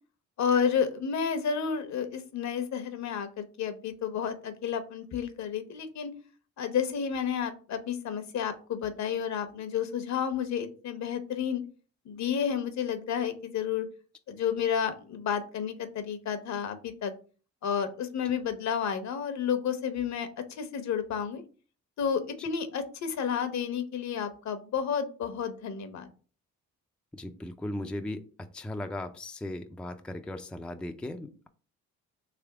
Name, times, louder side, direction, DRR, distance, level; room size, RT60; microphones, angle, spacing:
voice 1, 0.4-6.1 6.6-11.6 12.0-13.9 14.3-17.1 17.6-21.4 22.0-26.1, left 7 dB, 65° left, 9 dB, 0.8 m, -31 dB
voice 2, 27.1-28.3 28.5-31.5, left 1 dB, 5° left, 6 dB, 0.4 m, -37 dB
3.4 x 3.2 x 4.7 m, 0.39 s
cardioid pair, 90°, 30 cm